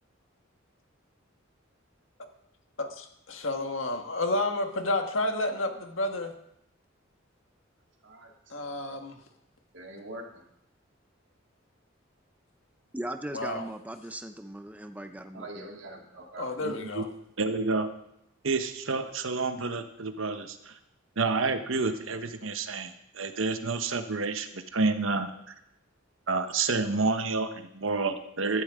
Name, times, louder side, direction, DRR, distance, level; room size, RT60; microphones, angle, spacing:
voice 1, 2.8-6.3 8.5-9.1 13.3-13.6 16.4-17.0, left 2 dB, 80° left, 5 dB, 1.6 m, -30 dB
voice 2, 8.0-9.0 9.7-10.4 15.3-16.5, right 2 dB, 65° right, 1 dB, 2.4 m, -44 dB
voice 3, 12.9-15.7, right 1 dB, 10° right, 7 dB, 0.7 m, -38 dB
voice 4, 16.6-17.0 17.4-17.9 18.4-20.8 21.2-25.5 26.3-28.6, right 3 dB, 85° right, 8 dB, 1.1 m, -29 dB
15.5 x 13.0 x 3.7 m, 0.78 s
head